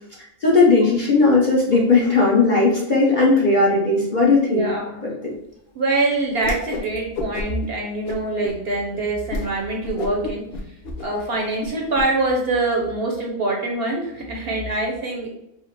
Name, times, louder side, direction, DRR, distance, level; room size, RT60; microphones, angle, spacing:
voice 1, 0.4-4.7 5.0-5.3, left 3 dB, 40° left, -4 dB, 0.8 m, -17 dB
voice 2, 4.4-5.1 5.7-10.4 11.0-15.3, right 2 dB, 55° right, -1 dB, 0.8 m, -24 dB
Whoosh swoosh swish, 6.4-6.9 7.1-7.7 8.0-8.5 8.9-9.0 9.3-9.5 9.8-12.0, left 3 dB, 80° left, 1.2 m, -30 dB
4.8 x 2.0 x 4.5 m, 0.82 s
omnidirectional pair, 1.5 m